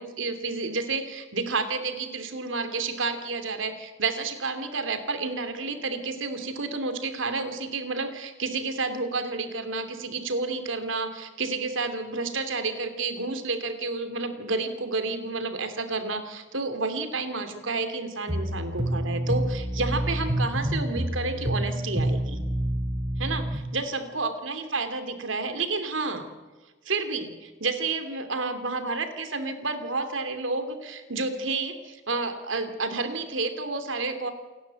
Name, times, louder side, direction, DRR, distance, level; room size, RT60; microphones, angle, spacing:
voice 1, 0.0-22.4 23.2-26.3 26.8-34.3, right 3 dB, 80° right, 8 dB, 2.8 m, -30 dB
sound 1, 18.3-23.6, right 1 dB, 25° right, 4.4 m, -28 dB
29.0 x 11.5 x 9.0 m, 1.3 s
head